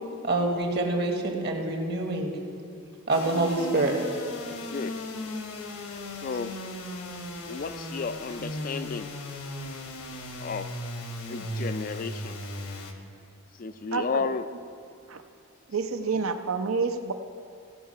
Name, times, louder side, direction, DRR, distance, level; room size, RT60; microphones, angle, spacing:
voice 1, 0.2-2.4 3.1-3.9, right 2 dB, 50° right, 2 dB, 1.3 m, -26 dB
sound 1, 3.1-12.9, left 1 dB, 75° left, 1.1 m, -37 dB
voice 2, 4.6-4.9 6.2-6.5 7.5-9.1 10.4-10.7 11.3-12.4 13.6-14.5, left 4 dB, 40° left, 11 dB, 0.3 m, -32 dB
voice 3, 13.9-14.3 15.1-15.2 15.7-17.1, right 4 dB, 70° right, 8 dB, 0.7 m, -28 dB
16.0 x 5.6 x 5.6 m, 2.5 s
head